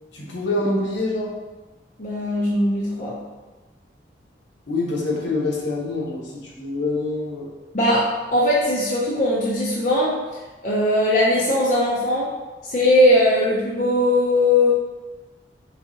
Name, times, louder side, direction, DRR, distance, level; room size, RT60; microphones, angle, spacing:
voice 1, 0.1-1.3 4.7-7.5, left 2 dB, 75° left, -4 dB, 1.0 m, -25 dB
voice 2, 2.0-3.2 7.7-10.2 10.6-12.3 12.7-14.7, left 1 dB, 45° left, -6 dB, 0.5 m, -19 dB
4.7 x 2.7 x 2.8 m, 1.2 s
head